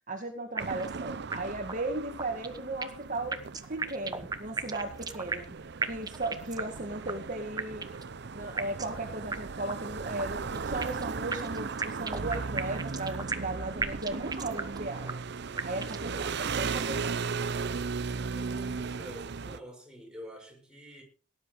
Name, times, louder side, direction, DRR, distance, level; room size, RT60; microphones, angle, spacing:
voice 1, 0.1-3.4 3.7-5.5 5.8-7.9 8.3-15.2 15.6-17.2, right 2 dB, 40° right, 2.1 m, -36 dB
sound 1, 0.6-1.0 1.3-1.4 1.7-1.8 2.2-3.0 3.3-5.5 5.8-6.8 7.1-7.2 7.6-8.1 8.6-9.0 9.3-9.4 9.7-9.8 10.2-11.0 11.3-13.5 13.8-14.8 15.1-15.2 15.6-16.1, right 4 dB, 20° right, 1.2 m, -34 dB
sound 2, 0.6-19.6, right 5 dB, 60° right, 0.7 m, -37 dB
voice 2, 18.3-21.0, equal, 5° right, 6.6 m, -47 dB
18.0 x 10.5 x 5.0 m
head